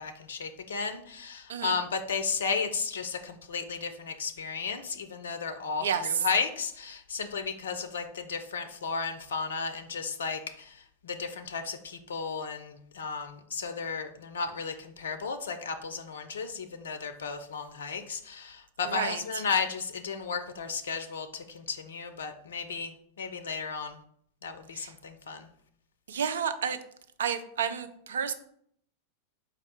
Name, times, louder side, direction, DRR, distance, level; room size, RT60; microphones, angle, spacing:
voice 1, 0.0-24.0 24.4-25.5, left 5 dB, 65° left, 8 dB, 0.4 m, -34 dB
voice 2, 5.8-6.2 18.8-19.2 24.7-24.9 26.1-26.8 27.2-28.3, right 7 dB, 65° right, 9 dB, 0.4 m, -30 dB
4.2 x 2.3 x 4.6 m, 0.66 s
figure-of-eight pair, 90°, 0 cm